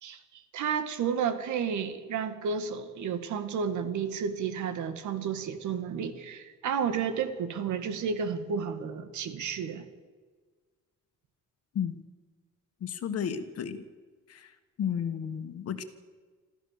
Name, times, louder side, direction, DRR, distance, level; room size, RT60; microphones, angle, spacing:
voice 1, 0.0-9.9, right 6 dB, 75° right, 9 dB, 2.0 m, -32 dB
voice 2, 12.8-13.8 14.3-14.5 14.8-15.8, left 8 dB, 55° left, 9 dB, 1.6 m, -32 dB
27.0 x 14.0 x 6.8 m, 1.4 s
cardioid pair, 170°, 30 cm